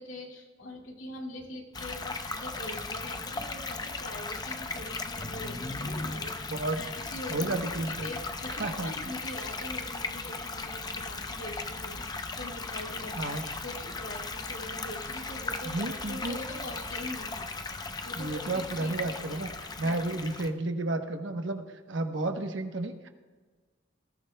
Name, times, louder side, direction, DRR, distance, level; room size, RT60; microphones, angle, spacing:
voice 1, 0.0-17.5 18.0-19.4 19.7-20.0, left 1 dB, 90° left, 1 dB, 2.3 m, -43 dB
sound 1, 1.7-20.5, left 3 dB, 20° left, 0.6 m, -37 dB
voice 2, 7.3-8.1 8.6-8.9 13.1-13.4 15.6-16.4 18.2-19.5 19.8-23.1, right 2 dB, 70° right, 6 dB, 1.0 m, -32 dB
20.0 x 15.5 x 2.3 m, 1.4 s
head